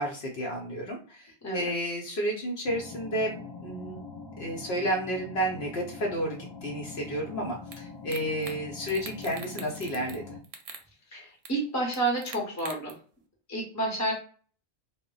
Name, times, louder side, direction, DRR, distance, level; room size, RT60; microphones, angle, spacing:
voice 1, 0.0-4.0 4.4-10.2, equal, 70° left, 0 dB, 0.8 m, -31 dB
sound 1, 2.6-10.4, left 4 dB, 45° left, 0.3 m, -43 dB
sound 2, 7.7-7.8 8.1-8.6 8.8-10.2 10.4-10.8 11.4-11.5 11.9-12.9, right 6 dB, 65° right, 0.7 m, -43 dB
voice 2, 11.1-12.9 13.5-14.1, right 2 dB, 20° left, -2 dB, 0.7 m, -29 dB
2.1 x 2.0 x 3.7 m, 0.41 s
omnidirectional pair, 1.1 m